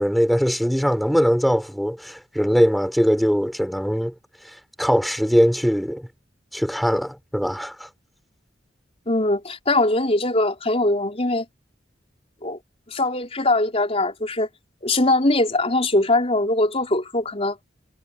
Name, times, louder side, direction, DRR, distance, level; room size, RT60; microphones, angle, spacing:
voice 1, 0.0-4.1 4.8-6.1 6.5-7.9, equal, ahead, 7.0 m, -21 dB
voice 2, 9.1-11.4 12.4-12.6 12.9-14.5 14.8-17.6, left 2 dB, 35° left, 4.6 m, -21 dB
head